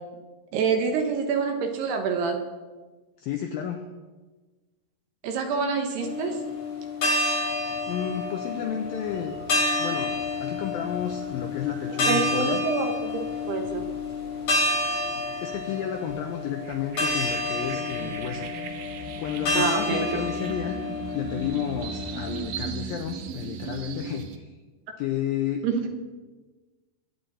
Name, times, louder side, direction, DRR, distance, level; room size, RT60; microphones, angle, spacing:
voice 1, 0.5-2.4 5.2-6.4 12.1-13.9 19.5-20.0 25.6-25.9, right 5 dB, 70° right, 4 dB, 3.1 m, -27 dB
voice 2, 3.2-3.9 7.9-9.3 9.8-12.6 15.4-18.7 19.2-20.8 21.1-24.5 25.0-25.7, left 9 dB, 90° left, 4 dB, 2.0 m, -32 dB
sound 1, 6.0-22.4, left 2 dB, 40° left, 3.6 m, -29 dB
sound 2, 8.3-8.5 8.9-24.4, right 7 dB, 90° right, 1.9 m, -40 dB
23.0 x 9.5 x 4.2 m, 1.3 s
omnidirectional pair, 5.3 m